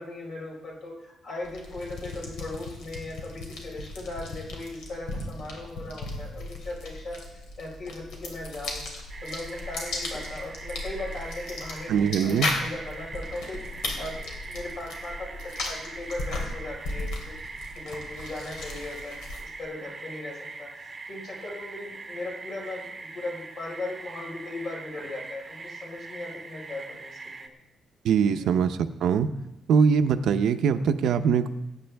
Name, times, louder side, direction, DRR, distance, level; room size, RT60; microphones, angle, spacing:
voice 1, 0.0-8.8 9.2-17.4 17.7-27.6 28.2-28.5, left 2 dB, 45° left, -2 dB, 4.6 m, -38 dB
sound 1, 1.4-19.6, left 2 dB, 80° left, 3.1 m, -36 dB
sound 2, 9.1-27.5, right 3 dB, 20° right, 1.0 m, -42 dB
voice 2, 11.9-12.5 28.0-28.7 29.0-29.3 29.7-31.5, right 6 dB, 70° right, 9 dB, 0.7 m, -22 dB
21.0 x 9.8 x 3.5 m, 0.89 s
cardioid pair, 175°, 0 cm